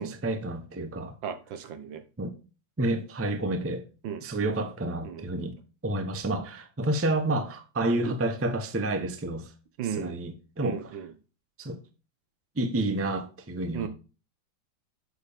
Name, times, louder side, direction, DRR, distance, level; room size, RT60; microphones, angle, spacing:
voice 1, 0.0-1.1 2.2-2.3 2.8-3.8 4.2-5.6 5.8-9.5 10.0-10.8 11.6-11.8 12.6-13.9, right 2 dB, 15° right, 0.5 m, -29 dB
voice 2, 1.2-2.0 4.0-4.3 5.0-5.3 9.8-10.1 10.6-11.1 13.7-13.9, right 8 dB, 80° right, 1.7 m, -35 dB
7.7 x 6.7 x 3.5 m
omnidirectional pair, 2.0 m